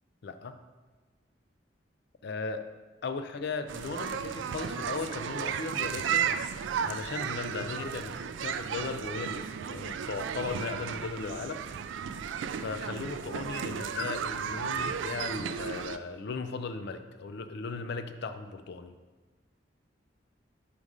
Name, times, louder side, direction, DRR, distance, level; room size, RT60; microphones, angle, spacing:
voice 1, 0.2-0.6 2.2-2.6 3.0-6.3 6.8-11.6 12.6-18.9, left 4 dB, 65° left, 9 dB, 0.4 m, -37 dB
sound 1, 3.7-16.0, right 7 dB, 85° right, 0.3 m, -34 dB
5.3 x 5.1 x 4.8 m, 1.3 s
head